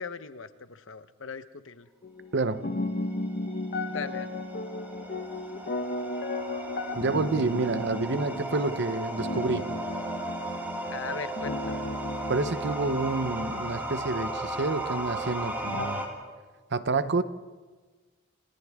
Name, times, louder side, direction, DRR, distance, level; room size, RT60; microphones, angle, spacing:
voice 1, 0.0-1.9 3.9-4.3 10.9-11.9, left 5 dB, 75° left, 12 dB, 1.0 m, -39 dB
sound 1, 2.0-15.9, left 2 dB, 50° left, 1.4 m, -35 dB
voice 2, 2.3-2.7 6.9-9.7 12.3-16.0 16.7-17.2, right 3 dB, 60° right, 13 dB, 0.9 m, -28 dB
sound 2, 2.8-16.1, right 1 dB, 10° right, 3.0 m, -36 dB
29.0 x 27.5 x 3.6 m, 1.4 s
head